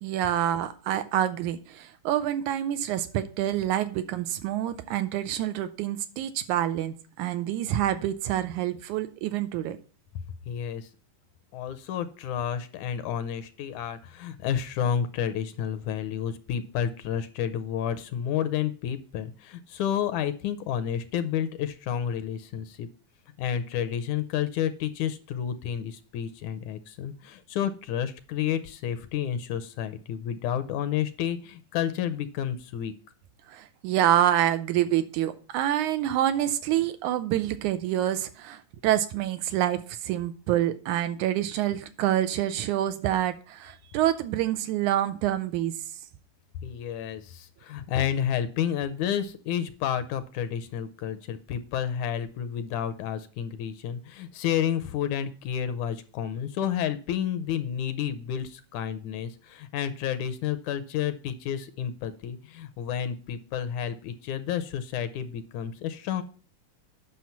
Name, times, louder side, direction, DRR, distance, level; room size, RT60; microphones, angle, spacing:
voice 1, 0.0-9.8 33.5-45.7, right 12 dB, 80° right, 11 dB, 2.0 m, -27 dB
voice 2, 10.5-10.9 11.5-22.9 23.4-32.9 46.6-66.2, left 9 dB, 80° left, 12 dB, 2.0 m, -30 dB
9.3 x 6.2 x 5.7 m, 0.38 s
omnidirectional pair, 3.7 m